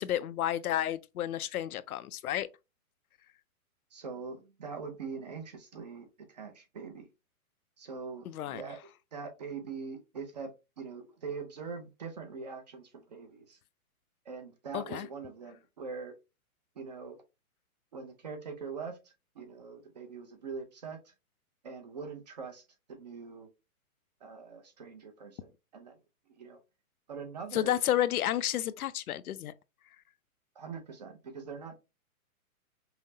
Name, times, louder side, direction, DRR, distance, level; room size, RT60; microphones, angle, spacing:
voice 1, 0.0-2.5 8.3-8.6 14.7-15.1 27.5-29.5, left 12 dB, 75° left, 0.5 m, -31 dB
voice 2, 3.9-7.1 7.8-13.6 14.2-16.1 16.8-17.2 17.9-21.1 21.6-23.5 24.2-25.9 26.3-26.6 27.1-27.8 30.6-31.8, right 5 dB, 30° right, 0.6 m, -43 dB
5.6 x 2.1 x 2.7 m
hypercardioid pair, 165°, 44 cm